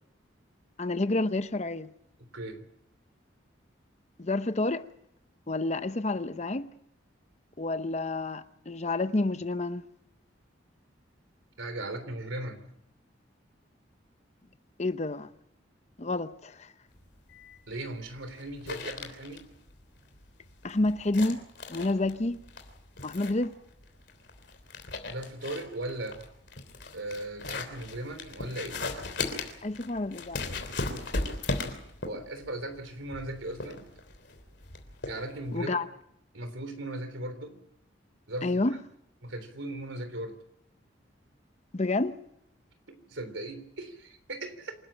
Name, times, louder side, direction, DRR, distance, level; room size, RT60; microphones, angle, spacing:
voice 1, 0.8-1.9 4.2-4.9 5.5-6.7 7.6-9.8 14.8-15.3 16.0-16.7 20.6-21.4 21.7-22.4 23.0-23.5 29.6-30.6 35.5-35.9 38.4-38.8 41.7-42.2, left 2 dB, 35° left, 0.8 m, -29 dB
voice 2, 2.3-2.7 11.6-12.6 17.7-19.4 25.1-26.2 26.9-28.8 32.0-33.8 35.0-35.8 36.3-37.6 38.3-38.6 39.2-40.4 42.9-44.8, right 1 dB, 85° right, 3.6 m, -38 dB
sound 1, 16.9-35.6, left 3 dB, 60° left, 3.4 m, -38 dB
27.0 x 13.0 x 9.0 m
head